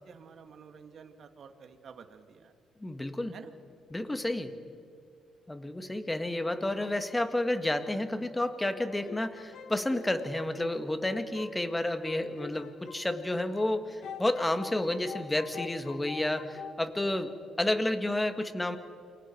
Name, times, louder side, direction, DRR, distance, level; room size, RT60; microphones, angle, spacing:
voice 1, 0.0-2.5 3.3-3.5, right 6 dB, 55° right, 7 dB, 2.2 m, -50 dB
voice 2, 2.8-3.4 3.9-4.5 5.5-17.3 17.6-18.8, left 1 dB, 10° left, 8 dB, 2.0 m, -30 dB
sound 1, 8.9-13.7 14.0-16.8, left 7 dB, 70° left, 1.2 m, -46 dB
28.5 x 24.0 x 4.7 m, 2.5 s
cardioid pair, 90°, 0 cm